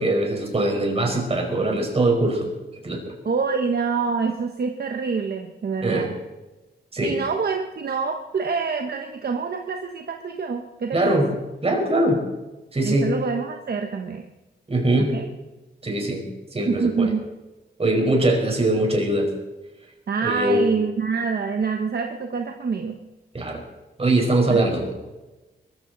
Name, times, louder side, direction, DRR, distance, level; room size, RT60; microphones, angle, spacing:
voice 1, 0.0-2.5 2.8-3.0 5.8-6.1 6.9-7.2 10.9-11.3 11.6-12.2 12.7-13.1 14.7-15.2 15.8-16.3 16.5-17.1 17.8-19.3 20.2-20.6 23.3-23.6 24.0-24.9, right 1 dB, 30° right, 2 dB, 4.8 m, -22 dB
voice 2, 3.2-6.1 7.0-11.2 12.8-14.2 15.1-15.3 16.7-17.2 20.1-23.0 24.5-24.7, right 5 dB, 55° right, 4 dB, 1.3 m, -26 dB
22.0 x 14.5 x 4.1 m, 1.1 s
wide cardioid pair, 95°, 19 cm